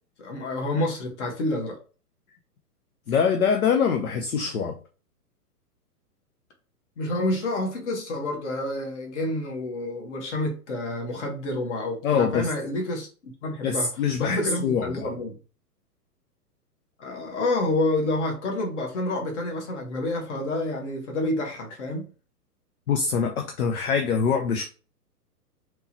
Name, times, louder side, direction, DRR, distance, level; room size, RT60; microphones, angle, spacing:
voice 1, 0.2-1.8 7.0-13.9 14.1-15.4 17.0-22.1, left 1 dB, 45° left, 1.4 m, -28 dB
voice 2, 3.1-4.8 12.0-12.5 13.6-15.1 22.9-24.6, left 6 dB, 65° left, 0.7 m, -24 dB
3.5 x 3.0 x 2.8 m
figure-of-eight pair, 115°, 47 cm